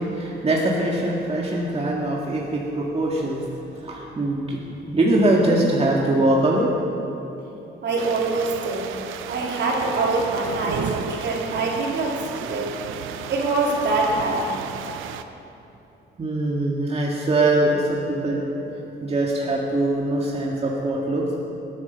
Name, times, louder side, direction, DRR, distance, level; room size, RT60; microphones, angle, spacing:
voice 1, 0.0-3.5 3.8-6.7 16.2-21.3, right 1 dB, 30° right, -3 dB, 1.9 m, -22 dB
voice 2, 7.8-8.9 9.3-12.7 13.3-14.6, right 3 dB, 60° right, -3 dB, 3.5 m, -24 dB
sound 1, 8.0-15.2, right 8 dB, 90° right, 0.8 m, -34 dB
19.5 x 9.6 x 5.8 m, 2.9 s
cardioid pair, 90°, 20 cm